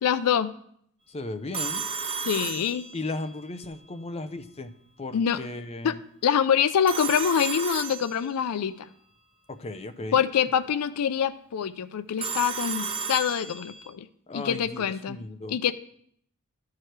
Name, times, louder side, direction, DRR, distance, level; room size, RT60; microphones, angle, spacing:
voice 1, 0.0-0.5 2.2-2.8 5.1-5.4 5.8-5.9 6.2-8.9 10.1-14.1 14.3-15.2 15.5-15.7, left 8 dB, 80° left, 14 dB, 0.4 m, -25 dB
voice 2, 1.1-1.8 2.9-4.7 5.0-6.0 9.5-10.2 14.3-15.7, left 2 dB, 30° left, 9 dB, 0.5 m, -36 dB
Telephone, 1.5-3.3 6.9-8.5 12.2-13.9, right 5 dB, 25° right, 0.8 m, -33 dB
12.5 x 4.8 x 4.5 m, 0.67 s
head